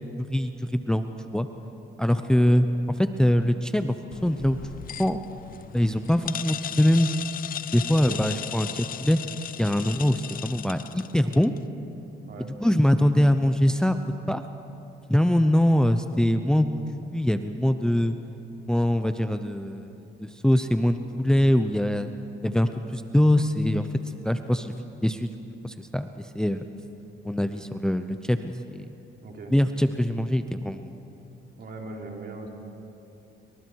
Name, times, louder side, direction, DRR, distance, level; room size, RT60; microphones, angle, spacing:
voice 1, 0.2-1.5 2.0-2.7 3.0-3.9 4.2-5.2 5.7-7.3 7.7-9.2 9.6-11.5 12.6-14.4 15.1-18.2 18.7-22.1 22.4-23.9 24.2-24.7 25.0-25.3 25.6-26.6 27.2-28.9 29.5-30.9, left 1 dB, 5° left, 9 dB, 0.8 m, -23 dB
sound 1, 4.1-11.6, left 10 dB, 45° left, 0.4 m, -37 dB
voice 2, 29.2-29.5 31.6-32.5, right 3 dB, 55° right, 0 dB, 3.8 m, -39 dB
29.0 x 24.0 x 4.7 m, 2.8 s
cardioid pair, 90°, 20 cm